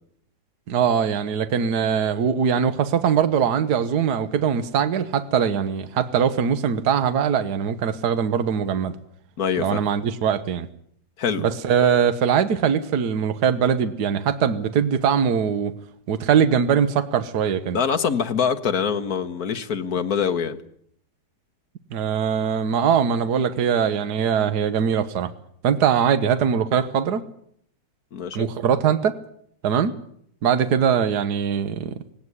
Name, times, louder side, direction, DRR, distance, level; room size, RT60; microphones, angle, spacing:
voice 1, 0.7-8.9 9.6-10.7 11.4-15.7 16.1-17.8 21.9-25.3 25.6-27.2 28.3-29.2 29.6-29.9 30.4-31.9, right 7 dB, 65° right, 11 dB, 1.6 m, -21 dB
voice 2, 9.4-9.8 11.2-11.5 17.7-20.6 28.1-28.5, left 7 dB, 60° left, 9 dB, 1.7 m, -24 dB
19.0 x 17.5 x 9.7 m, 0.66 s
omnidirectional pair, 1.9 m